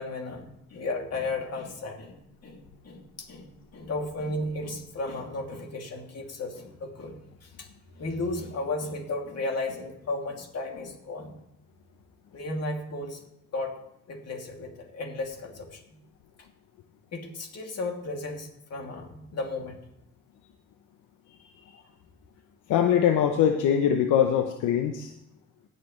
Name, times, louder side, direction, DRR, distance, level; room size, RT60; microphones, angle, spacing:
voice 1, 0.0-7.7 7.9-11.4 12.3-13.2 13.5-13.8 14.1-15.8 17.1-19.8, left 2 dB, 55° left, 2 dB, 2.6 m, -34 dB
voice 2, 22.7-25.1, left 9 dB, 85° left, 5 dB, 0.8 m, -22 dB
19.5 x 6.9 x 3.2 m, 0.83 s
cardioid pair, 90°, 30 cm